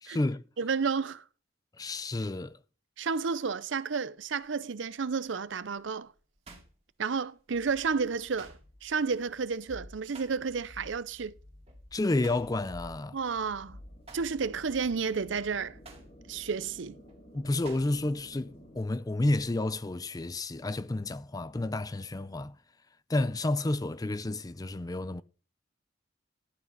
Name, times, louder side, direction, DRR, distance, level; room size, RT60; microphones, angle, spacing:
voice 1, 0.0-0.4 1.8-2.6 11.9-13.2 17.3-22.6 23.1-25.2, left 2 dB, 20° left, 0.4 m, -30 dB
voice 2, 0.6-1.2 3.0-6.1 7.0-8.5 8.8-11.3 13.1-13.8 14.1-15.8 16.3-17.0, right 5 dB, 75° right, 0.6 m, -31 dB
sound 1, 4.2-4.5 5.1-7.6 7.9-10.8 11.1-11.3 11.7-13.6 13.9-18.3 18.5-19.5, right 3 dB, 30° right, 2.3 m, -54 dB
sound 2, 7.5-18.8, left 1 dB, 35° left, 2.3 m, -52 dB
12.0 x 5.7 x 5.3 m
head